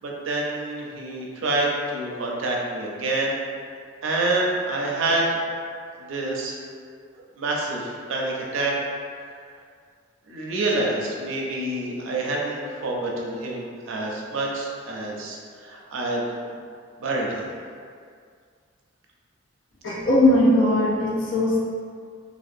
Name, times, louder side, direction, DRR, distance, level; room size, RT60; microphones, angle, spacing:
voice 1, 0.0-3.4 4.0-5.3 6.1-6.6 7.4-8.7 10.3-15.4 15.6-16.2 17.0-17.5, right 2 dB, 85° right, -2 dB, 0.5 m, -27 dB
voice 2, 19.8-21.6, left 1 dB, 80° left, -6 dB, 0.7 m, -19 dB
2.4 x 2.1 x 2.6 m, 2.1 s
head